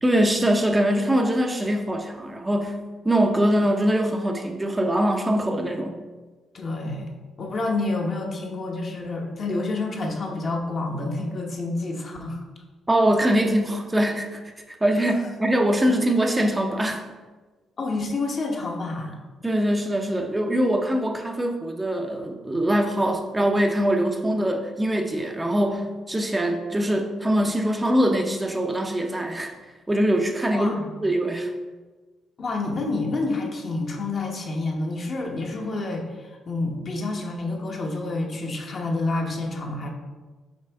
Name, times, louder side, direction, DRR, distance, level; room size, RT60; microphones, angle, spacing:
voice 1, 0.0-6.0 12.9-14.4 14.7-17.1 19.4-29.5 29.9-30.7 31.0-31.5, right 1 dB, 15° right, 3 dB, 0.6 m, -23 dB
voice 2, 6.5-12.4 17.8-19.2 30.5-30.9 32.4-39.9, left 2 dB, 45° left, 1 dB, 1.0 m, -28 dB
6.6 x 4.5 x 3.4 m, 1.3 s
cardioid pair, 90°, 0 cm